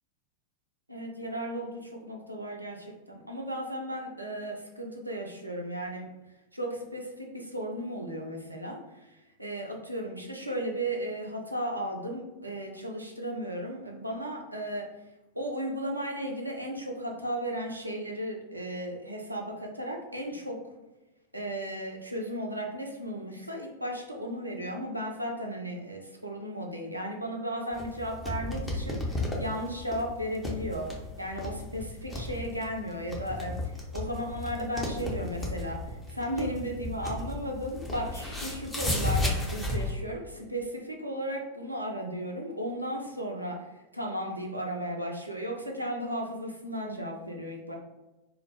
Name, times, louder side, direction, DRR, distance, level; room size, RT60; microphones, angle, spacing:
voice 1, 0.9-6.1 6.5-14.9 15.3-20.7 21.3-30.9 31.2-47.8, equal, 85° right, 0 dB, 0.4 m, -35 dB
sound 1, 27.7-39.9, left 1 dB, 10° left, 0.6 m, -34 dB
2.3 x 2.0 x 3.2 m, 1.0 s
figure-of-eight pair, 90°, 0 cm